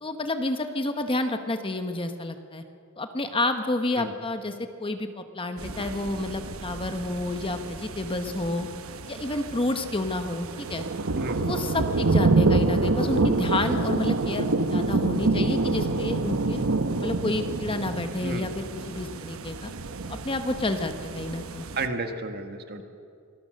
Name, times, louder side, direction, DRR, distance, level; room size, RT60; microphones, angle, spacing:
voice 1, 0.0-2.6 3.0-8.7 9.1-10.9 11.4-16.6 17.0-19.7 20.1-21.7, left 2 dB, 25° left, 7 dB, 1.1 m, -30 dB
sound 1, 5.6-21.9, right 3 dB, 85° right, 1.0 m, -27 dB
voice 2, 21.8-22.8, right 2 dB, 50° right, 6 dB, 1.6 m, -32 dB
25.5 x 20.0 x 6.5 m, 2.4 s
head